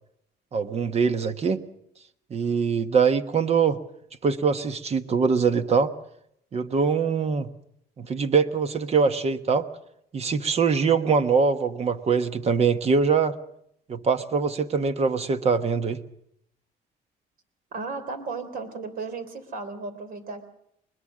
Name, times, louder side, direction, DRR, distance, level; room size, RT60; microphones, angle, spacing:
voice 1, 0.5-1.7 2.3-3.8 4.2-5.9 6.5-7.5 8.0-9.7 10.1-13.3 13.9-16.0, right 5 dB, 40° right, 10 dB, 1.3 m, -23 dB
voice 2, 17.7-20.5, right 4 dB, 60° right, 9 dB, 3.5 m, -35 dB
21.0 x 21.0 x 6.4 m, 0.76 s
cardioid pair, 110°, 17 cm